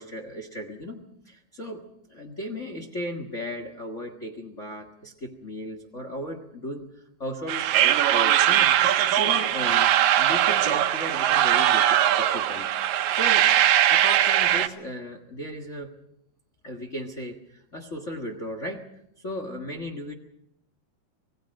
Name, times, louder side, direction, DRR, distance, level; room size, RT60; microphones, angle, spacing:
voice 1, 0.0-1.8 2.1-13.5 13.9-15.9 16.6-18.9 19.2-20.1, equal, 40° left, 5 dB, 1.1 m, -36 dB
sound 1, 7.5-14.7, right 11 dB, 85° right, 2.7 m, -21 dB
26.0 x 17.5 x 6.4 m, 0.77 s
omnidirectional pair, 3.8 m